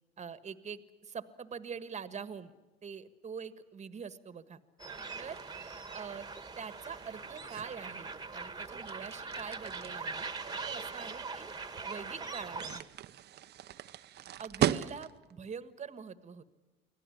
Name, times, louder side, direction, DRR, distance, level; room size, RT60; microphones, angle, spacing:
voice 1, 0.2-2.5 2.8-4.6 5.2-5.4 5.9-6.3 6.6-11.5 11.9-12.9 14.4-16.4, right 6 dB, 35° right, 13 dB, 1.5 m, -44 dB
sound 1, 4.8-12.8, right 4 dB, 20° right, 1.7 m, -42 dB
sound 2, 4.9-15.4, right 12 dB, 55° right, 0.9 m, -39 dB
24.5 x 16.5 x 10.0 m, 1.2 s
supercardioid pair, 85°, 20 cm